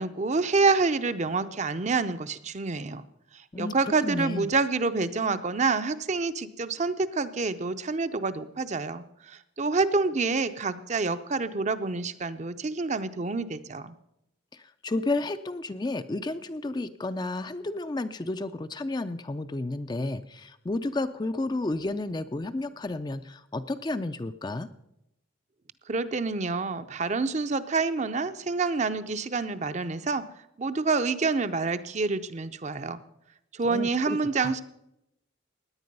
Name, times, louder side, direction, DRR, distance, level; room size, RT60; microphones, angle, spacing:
voice 1, 0.0-3.0 3.3-13.9 25.9-30.2 30.6-33.0 33.5-34.6, right 4 dB, 35° right, 11 dB, 0.6 m, -27 dB
voice 2, 3.5-4.5 14.5-24.7 33.7-34.5, left 2 dB, 20° left, 11 dB, 0.4 m, -32 dB
17.0 x 10.0 x 5.4 m, 0.84 s
head